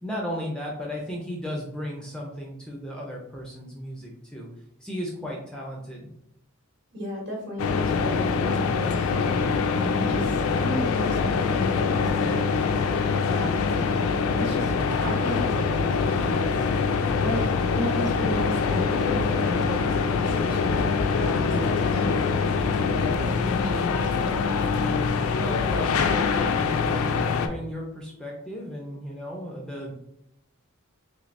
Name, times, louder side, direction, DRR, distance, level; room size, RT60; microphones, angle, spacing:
voice 1, 0.0-4.5 4.8-6.1 25.4-29.9, equal, 5° left, -2 dB, 0.4 m, -35 dB
voice 2, 6.9-12.5 13.2-14.7 15.0-17.4 17.7-24.4, equal, 55° right, -1 dB, 1.0 m, -34 dB
sound 1, 7.6-27.5, left 5 dB, 75° left, 0.3 m, -24 dB
3.2 x 3.1 x 2.5 m, 0.76 s
head